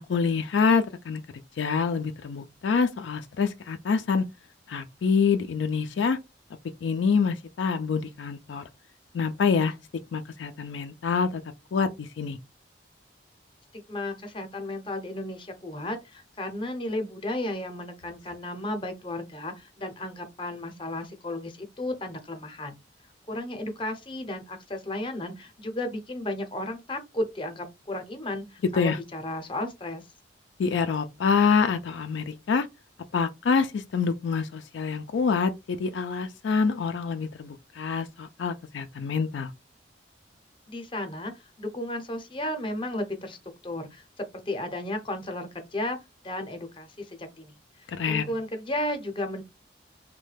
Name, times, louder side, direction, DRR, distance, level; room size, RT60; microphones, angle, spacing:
voice 1, 0.1-1.2 1.6-4.2 4.7-6.2 6.8-8.6 9.1-9.7 10.1-11.4 11.7-12.4 28.8-29.0 30.6-32.7 33.1-39.5 48.0-48.3, left 5 dB, 75° left, 0.4 m, -26 dB
voice 2, 13.7-22.7 23.3-30.0 40.7-41.3 41.6-43.4 43.6-46.0 46.2-49.4, left 1 dB, 30° left, 0.6 m, -34 dB
3.1 x 2.2 x 3.2 m
head